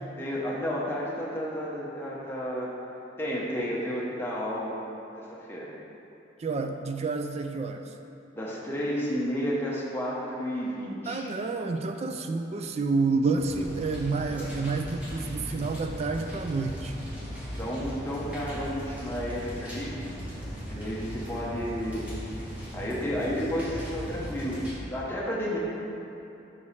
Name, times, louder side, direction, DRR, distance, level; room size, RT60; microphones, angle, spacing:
voice 1, 0.2-2.7 3.2-4.8 5.2-5.7 8.3-11.3 17.6-19.9 20.7-22.2 22.7-25.6, equal, 10° left, -5 dB, 0.9 m, -32 dB
voice 2, 6.4-7.8 11.1-16.9, right 3 dB, 35° right, 6 dB, 0.3 m, -29 dB
sound 1, 13.3-24.7, equal, 5° right, 1.2 m, -38 dB
5.8 x 4.8 x 4.1 m, 2.9 s
head